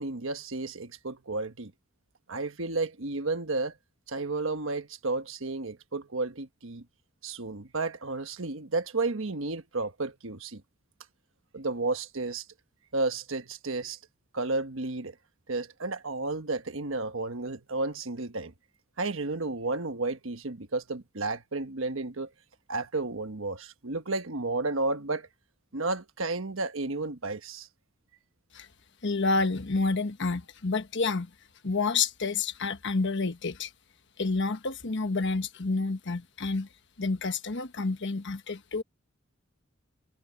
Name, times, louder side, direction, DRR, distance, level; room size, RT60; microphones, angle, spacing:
voice 1, 0.0-1.7 2.3-3.7 4.1-6.8 7.2-10.6 11.5-12.4 12.9-14.0 14.3-15.2 15.5-18.5 19.0-22.3 22.7-25.3 25.7-27.7, right 3 dB, 70° right, 1.3 m, -32 dB
voice 2, 29.0-31.3 31.6-33.7 34.2-36.7 37.0-38.8, left 3 dB, 60° left, 1.2 m, -29 dB
head